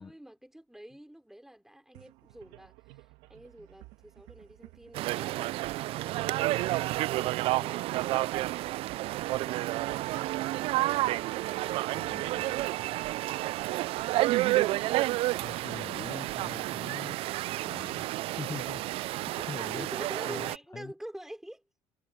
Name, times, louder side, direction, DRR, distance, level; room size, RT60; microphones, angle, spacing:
voice 1, 0.0-5.7 19.7-21.6, right 1 dB, 5° right, 4.0 m, -49 dB
sound 1, 1.9-17.6, right 20 dB, 80° right, 2.7 m, -55 dB
sound 2, 4.9-20.6, right 17 dB, 65° right, 0.4 m, -30 dB
voice 2, 11.9-12.6 15.4-17.2 17.6-18.1 18.4-19.9 20.3-20.9, left 5 dB, 30° left, 1.1 m, -43 dB
supercardioid pair, 75°, 11 cm